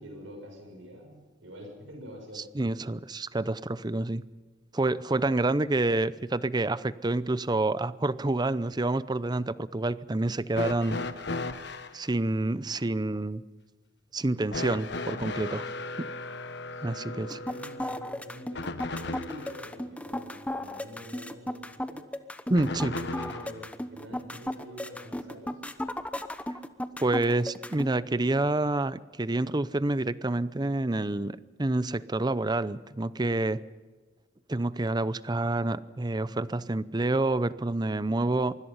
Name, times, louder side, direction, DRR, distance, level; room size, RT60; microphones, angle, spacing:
voice 1, 0.0-2.4 16.7-22.0 22.7-25.6, equal, 80° right, 2 dB, 6.9 m, -46 dB
voice 2, 2.5-4.2 4.7-11.0 11.9-13.4 14.1-15.7 16.0-16.1 16.8-17.4 22.5-22.9 27.0-33.6 34.5-38.6, right 2 dB, 20° right, 16 dB, 0.6 m, -28 dB
sound 1, 10.5-12.0 14.5-19.6 22.5-23.6 24.8-24.9 26.0-26.1, left 2 dB, 60° left, 1.4 m, -36 dB
sound 2, 17.3-27.9, left 1 dB, 5° left, 1.0 m, -35 dB
25.0 x 23.5 x 5.7 m, 1.3 s
head